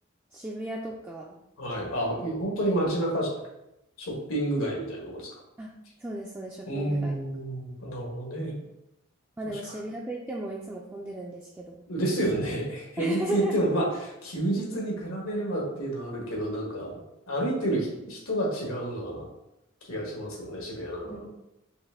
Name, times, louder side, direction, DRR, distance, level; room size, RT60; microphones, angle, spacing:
voice 1, 0.3-1.4 5.6-5.7 6.0-7.1 8.5-8.6 9.4-11.9 13.0-13.6 21.0-21.3, right 1 dB, 10° right, -3 dB, 0.3 m, -35 dB
voice 2, 1.6-3.3 4.0-5.4 6.7-8.5 9.7-9.8 11.9-17.0 17.3-19.3 19.8-21.2, right 1 dB, 85° left, -2 dB, 1.5 m, -29 dB
5.3 x 2.5 x 3.6 m, 0.87 s
head